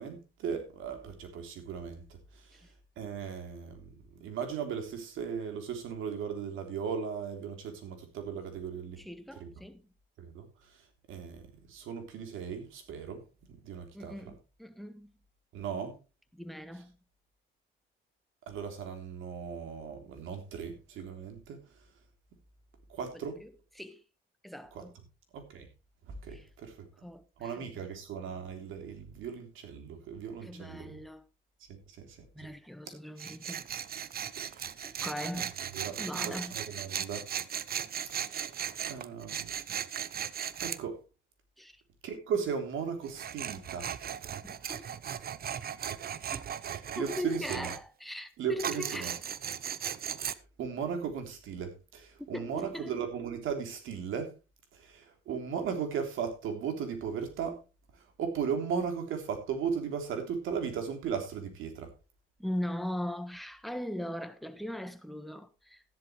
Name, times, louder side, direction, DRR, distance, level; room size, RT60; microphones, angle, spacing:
voice 1, 0.0-2.0 2.3-2.6 3.0-3.9 4.2-9.0 9.3-9.5 10.2-10.5 11.1-13.2 13.6-14.3 15.5-16.0 18.4-21.6 22.9-23.4 24.7-24.8 25.3-25.7 26.1-26.9 27.4-31.0 31.7-32.5 34.4-34.6 35.3-35.5 35.7-36.0 36.2-37.3 38.2-38.6 38.9-39.5 40.6-41.0 42.0-43.9 45.9-46.0 46.6-47.7 48.4-49.1 50.2-54.4 54.7-57.6 57.9-61.9, right 7 dB, 85° right, 3.4 m, -37 dB
voice 2, 9.0-9.8 13.9-15.1 16.3-17.0 23.1-23.5 23.8-24.0 24.4-24.9 26.3-26.5 27.0-27.9 30.4-31.3 32.3-33.6 34.8-35.5 36.0-36.6 41.6-41.8 44.4-44.9 46.3-46.4 47.0-49.1 52.2-53.0 62.4-65.8, left 1 dB, ahead, 1.5 m, -40 dB
Tools, 33.2-40.8 43.0-47.8 48.6-50.3, right 9 dB, 50° right, 0.8 m, -37 dB
13.5 x 11.0 x 3.3 m
cardioid pair, 90°, 20 cm